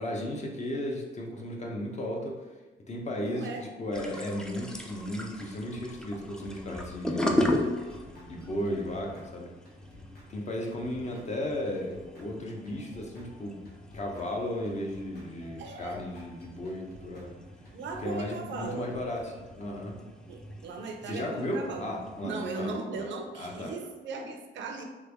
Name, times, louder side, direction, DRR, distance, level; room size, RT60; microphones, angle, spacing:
voice 1, 0.0-2.4 2.9-7.7 8.3-9.5 10.3-13.6 13.9-17.3 18.0-20.0 21.0-23.1 23.4-23.8, left 1 dB, 35° left, 0 dB, 0.7 m, -35 dB
voice 2, 3.2-3.7 11.0-11.2 15.6-16.0 17.7-18.9 20.3-21.9 22.2-24.8, right 3 dB, 70° right, 4 dB, 0.5 m, -37 dB
sound 1, 3.9-22.3, left 1 dB, 5° left, 0.4 m, -37 dB
sound 2, 7.5-19.9, left 1 dB, 55° left, 1.1 m, -54 dB
3.3 x 2.5 x 3.4 m, 1.3 s
cardioid pair, 90°, 20 cm